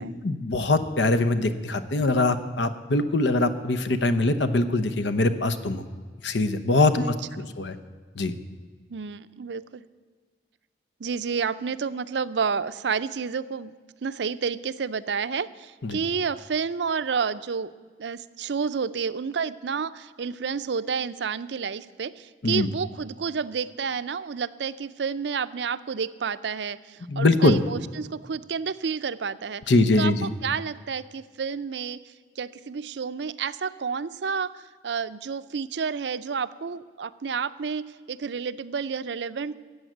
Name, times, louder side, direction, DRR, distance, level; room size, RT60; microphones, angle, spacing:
voice 1, 0.0-5.9 6.2-7.0 7.4-7.7 8.2-8.3 15.8-16.0 22.4-22.7 27.1-27.6 29.7-30.3, left 2 dB, 85° left, 11 dB, 0.9 m, -23 dB
voice 2, 8.9-9.8 11.0-13.7 14.0-17.7 18.0-29.6 30.0-32.0 32.4-39.6, right 6 dB, 75° right, 14 dB, 0.5 m, -30 dB
13.5 x 8.0 x 9.2 m, 1.5 s
head